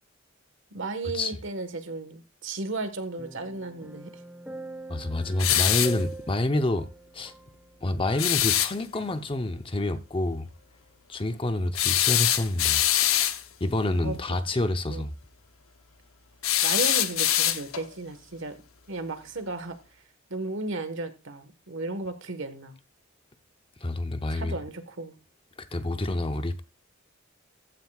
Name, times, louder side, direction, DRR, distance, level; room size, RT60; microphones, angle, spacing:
voice 1, 0.7-4.1 14.0-14.5 14.9-15.0 16.6-18.5 18.9-19.8 20.3-22.8 24.3-25.1, right 3 dB, 65° right, 1.5 m, -34 dB
sound 1, 3.2-8.6 8.9-9.1, right 2 dB, 5° right, 1.3 m, -44 dB
voice 2, 4.9-6.9 7.1-7.3 7.8-10.5 11.1-12.8 13.6-15.1 23.8-24.6 25.6-26.6, left 1 dB, 25° left, 0.8 m, -28 dB
sound 2, 5.4-6.0 8.2-8.7 11.7-13.4 16.4-17.9, left 12 dB, 90° left, 0.9 m, -23 dB
14.5 x 9.5 x 2.4 m
head